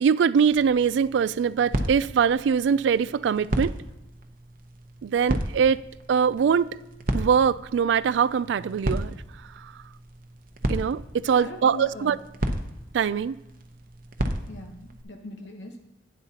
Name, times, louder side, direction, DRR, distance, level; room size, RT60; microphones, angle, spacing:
voice 1, 0.0-3.8 5.0-6.8 7.1-9.1 9.6-9.7 10.7-12.2 12.9-13.4, right 7 dB, 70° right, 0.3 m, -23 dB
sound 1, 0.5-15.0, right 1 dB, 50° right, 0.8 m, -34 dB
voice 2, 11.3-12.2 14.5-15.8, left 2 dB, 75° left, 1.1 m, -40 dB
11.5 x 9.7 x 2.9 m
head